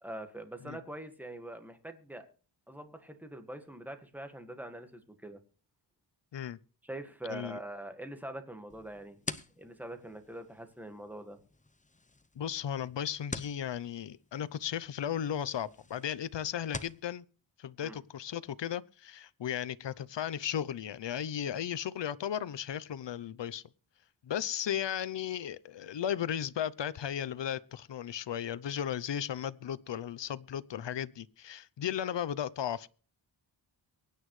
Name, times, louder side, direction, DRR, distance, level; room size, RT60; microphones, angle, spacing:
voice 1, 0.0-2.3 2.7-5.4 6.8-9.2 9.6-11.4 17.8-18.0, right 1 dB, 5° right, 1.8 m, -44 dB
voice 2, 7.3-7.6 12.4-17.3 17.6-23.6 24.2-32.9, left 9 dB, 65° left, 0.7 m, -35 dB
sound 1, 8.7-17.0, left 3 dB, 15° left, 0.8 m, -47 dB
23.5 x 9.4 x 3.2 m
wide cardioid pair, 90°, 46 cm